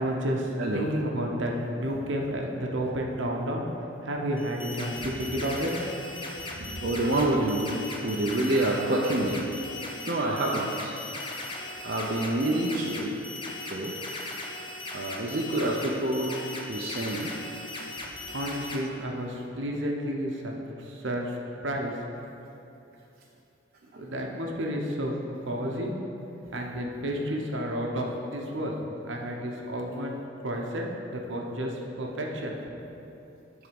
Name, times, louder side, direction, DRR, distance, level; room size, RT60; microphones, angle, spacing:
voice 1, 0.0-3.6 4.0-5.7 17.9-20.5 20.8-21.4 21.6-21.9 23.9-25.1 25.4-25.9 26.5-28.8 29.0-32.5, equal, 70° right, 0 dB, 1.0 m, -31 dB
sound 1, 4.4-18.8, left 2 dB, 25° left, 0.7 m, -38 dB
voice 2, 6.5-9.5 10.1-10.9 11.8-13.2 13.7-13.9 14.9-16.4 16.7-17.3, right 1 dB, 55° right, -4 dB, 0.6 m, -27 dB
11.0 x 3.6 x 5.2 m, 2.8 s
head